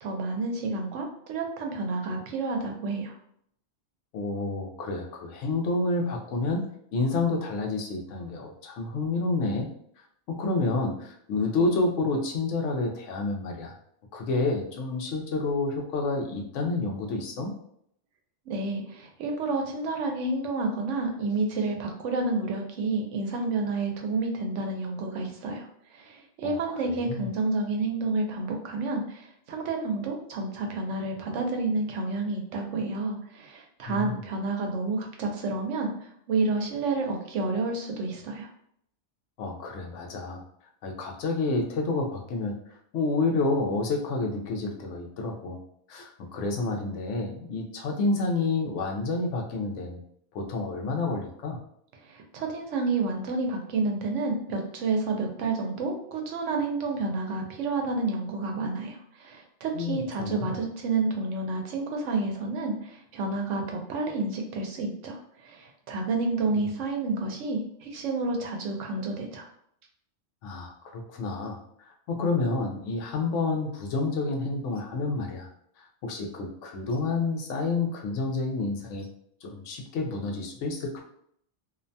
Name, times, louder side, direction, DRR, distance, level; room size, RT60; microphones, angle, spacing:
voice 1, 0.0-3.1 18.5-25.7 25.9-35.9 36.3-38.5 52.1-69.5, right 3 dB, 85° right, 2 dB, 0.9 m, -30 dB
voice 2, 4.1-6.7 6.9-9.7 10.3-13.7 14.1-17.5 26.4-26.6 26.8-27.3 33.9-34.1 39.4-40.4 40.8-42.5 42.9-45.6 45.9-50.0 50.3-51.6 59.7-60.6 66.5-66.7 70.4-71.6 72.1-75.5 75.8-79.1 79.4-81.0, left 3 dB, 90° left, 2 dB, 0.9 m, -29 dB
2.6 x 2.1 x 2.6 m, 0.68 s
omnidirectional pair, 1.2 m